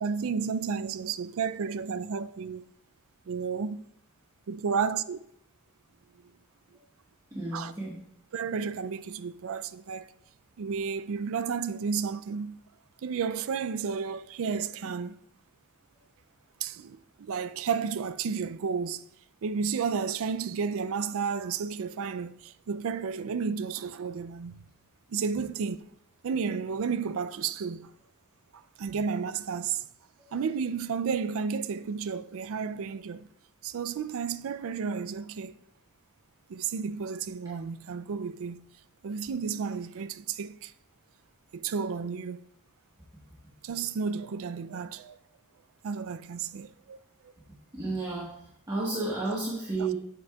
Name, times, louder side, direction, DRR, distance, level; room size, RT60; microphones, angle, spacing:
voice 1, 0.0-2.6 3.3-3.8 4.5-5.2 7.5-7.7 8.3-10.1 10.6-12.6 13.0-15.2 16.6-19.0 19.4-24.6 25.1-25.8 26.2-27.9 28.8-29.9 30.3-33.3 33.6-35.5 36.5-38.6 39.0-40.7 41.5-42.4 43.6-45.2 45.8-47.0 49.8-49.9, right 6 dB, 65° right, 0.4 m, -32 dB
voice 2, 7.3-8.0 47.7-48.3 48.7-49.9, right 2 dB, 20° right, 1.4 m, -31 dB
10.5 x 8.0 x 2.3 m
head